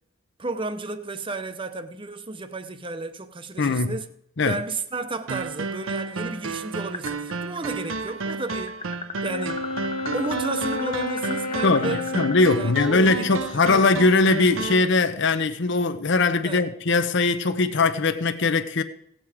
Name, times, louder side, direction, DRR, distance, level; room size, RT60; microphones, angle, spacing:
voice 1, 0.4-4.1 4.4-8.8 9.2-9.6 10.1-12.0 12.6-13.8 16.4-16.7, right 3 dB, 25° right, 0.7 m, -32 dB
voice 2, 3.6-4.0 4.4-4.6 11.6-18.8, left 3 dB, 55° left, 0.7 m, -21 dB
sound 1, 5.3-14.9, right 4 dB, 65° right, 0.7 m, -32 dB
sound 2, 6.9-7.6 7.8-12.4, left 5 dB, 25° left, 0.7 m, -36 dB
Wind instrument woodwind instrument, 9.2-13.8, left 2 dB, 90° left, 1.4 m, -32 dB
17.0 x 7.7 x 4.9 m
head